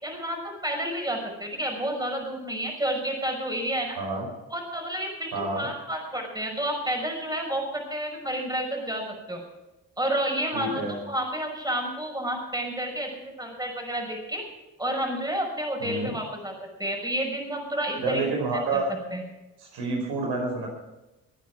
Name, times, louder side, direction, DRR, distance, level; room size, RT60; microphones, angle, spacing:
voice 1, 0.0-4.0 4.5-9.4 10.0-13.1 13.4-14.4 14.8-18.3 18.7-18.8 19.1-19.2, right 1 dB, 10° right, 2 dB, 6.0 m, -30 dB
voice 2, 3.9-4.3 5.3-5.7 10.5-11.0 15.8-16.1 18.0-18.9 19.6-20.7, right 3 dB, 70° right, 0 dB, 5.6 m, -29 dB
20.5 x 9.2 x 6.2 m, 1.0 s
hypercardioid pair, 50°, 41 cm